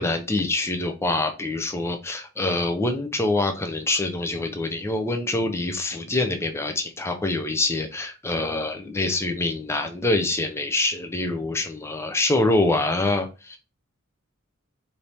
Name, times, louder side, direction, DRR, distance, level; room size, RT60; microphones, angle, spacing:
voice 1, 0.0-13.6, left 2 dB, 10° left, 5 dB, 0.5 m, -25 dB
4.5 x 2.7 x 3.3 m, 0.31 s
head